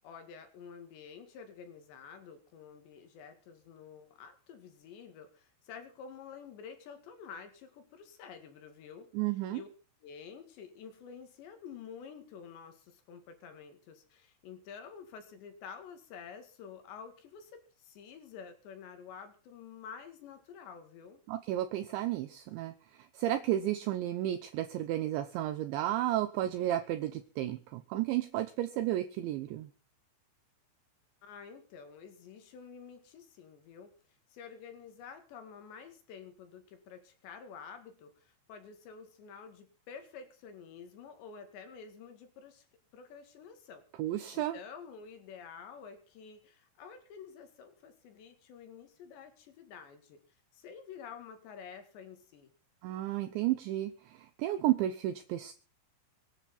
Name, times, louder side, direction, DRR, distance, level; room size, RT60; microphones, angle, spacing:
voice 1, 0.0-9.1 9.5-9.7 10.0-21.2 31.2-33.9 34.3-42.7 42.9-43.8 44.1-50.2 50.5-52.5, left 6 dB, 65° left, 8 dB, 4.0 m, -49 dB
voice 2, 9.1-9.6 21.3-22.7 23.1-29.7 44.0-44.6 52.8-55.5, right 13 dB, 75° right, 9 dB, 2.9 m, -32 dB
24.5 x 10.0 x 4.2 m, 0.38 s
omnidirectional pair, 5.9 m